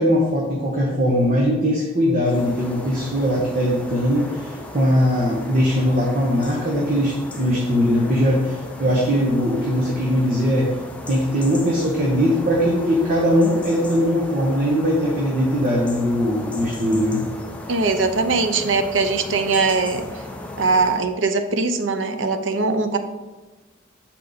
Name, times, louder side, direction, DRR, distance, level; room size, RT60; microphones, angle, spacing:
voice 1, 0.0-10.7 11.1-17.2, equal, 45° right, -3 dB, 0.9 m, -20 dB
sound 1, 2.2-21.1, left 1 dB, 5° left, 0.6 m, -36 dB
voice 2, 17.7-20.0 20.6-23.0, right 4 dB, 70° right, 8 dB, 0.6 m, -21 dB
6.7 x 4.4 x 3.9 m, 1.2 s
head